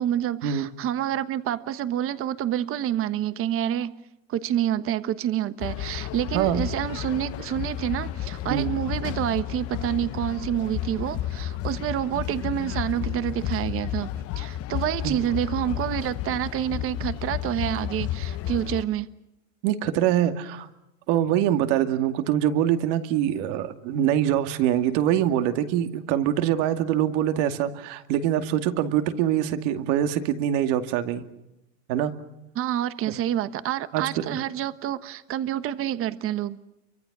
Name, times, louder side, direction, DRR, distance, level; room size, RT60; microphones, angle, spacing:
voice 1, 0.0-4.0 4.3-14.1 14.4-19.1 32.5-36.6, right 11 dB, 35° right, 1.3 m, -28 dB
sound 1, 5.6-18.8, left 13 dB, 40° left, 0.9 m, -32 dB
voice 2, 6.3-6.7 8.5-8.8 15.0-15.2 19.6-20.7 21.1-31.2 31.9-32.1 33.9-34.4, right 11 dB, 65° right, 2.4 m, -24 dB
29.5 x 24.5 x 6.2 m
supercardioid pair, 145°, 38 cm